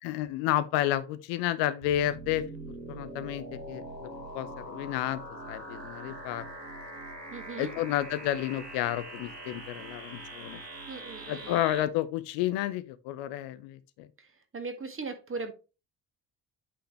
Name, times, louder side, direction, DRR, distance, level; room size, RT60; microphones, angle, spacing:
voice 1, 0.0-2.4 2.9-4.1 4.3-5.2 5.5-6.5 7.6-10.6 11.3-14.1, left 13 dB, 60° left, 0.7 m, -31 dB
sound 1, 1.8-11.8, right 1 dB, 90° right, 1.5 m, -43 dB
voice 2, 7.3-7.7 10.9-11.6 14.2-15.5, right 4 dB, 25° right, 1.8 m, -39 dB
8.3 x 5.6 x 3.2 m
figure-of-eight pair, 45°, 49 cm